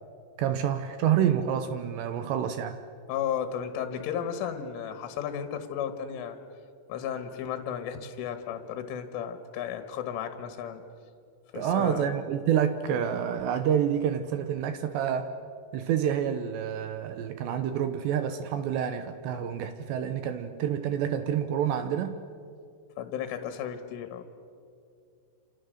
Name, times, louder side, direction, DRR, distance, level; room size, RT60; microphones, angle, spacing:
voice 1, 0.4-2.8 11.5-15.3 15.7-22.2, right 9 dB, 75° right, 9 dB, 2.7 m, -28 dB
voice 2, 3.1-6.4 6.9-10.8 11.5-12.1 23.0-24.2, left 8 dB, 75° left, 8 dB, 3.7 m, -34 dB
28.0 x 28.0 x 6.6 m, 2.4 s
omnidirectional pair, 5.9 m